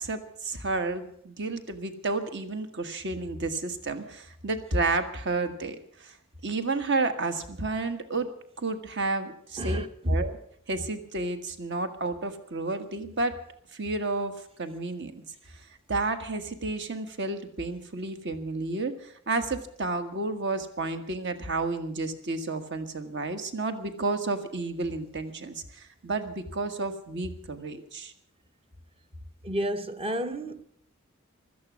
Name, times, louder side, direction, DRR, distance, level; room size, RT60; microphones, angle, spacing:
voice 1, 0.0-6.2 6.4-8.3 8.6-10.4 10.7-13.4 13.7-14.3 14.6-15.2 15.9-28.1, right 3 dB, 55° right, 1.5 m, -31 dB
voice 2, 9.6-10.2 29.4-30.6, equal, 25° right, 0.8 m, -29 dB
16.5 x 13.0 x 6.2 m
head